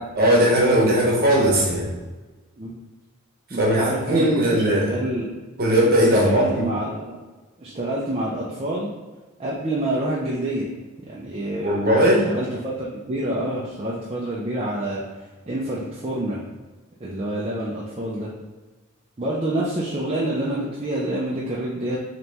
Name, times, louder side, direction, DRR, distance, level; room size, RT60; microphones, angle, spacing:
voice 1, 0.2-1.9 3.6-4.9 5.6-6.7 11.6-12.3, right 1 dB, 40° right, -3 dB, 1.0 m, -18 dB
voice 2, 3.5-5.3 6.2-7.2 7.6-8.9 9.4-10.7 11.0-11.8 12.3-15.0 15.5-16.4 17.0-18.3 19.2-22.0, right 1 dB, 25° right, -5 dB, 0.4 m, -27 dB
4.0 x 2.9 x 3.4 m, 1.2 s
head